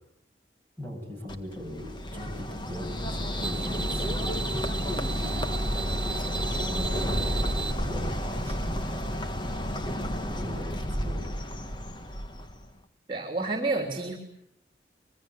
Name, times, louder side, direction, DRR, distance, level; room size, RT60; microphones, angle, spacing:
voice 1, 0.8-4.3 5.9-7.4 7.8-9.1 10.2-11.2, left 1 dB, 10° left, 1 dB, 7.1 m, -40 dB
Bird, 1.3-12.7, equal, 25° left, 1.6 m, -31 dB
sound 1, 2.9-7.7, right 4 dB, 5° right, 2.0 m, -35 dB
voice 2, 13.1-14.2, right 3 dB, 30° right, 4 dB, 3.2 m, -29 dB
25.5 x 22.5 x 9.5 m, 0.77 s
head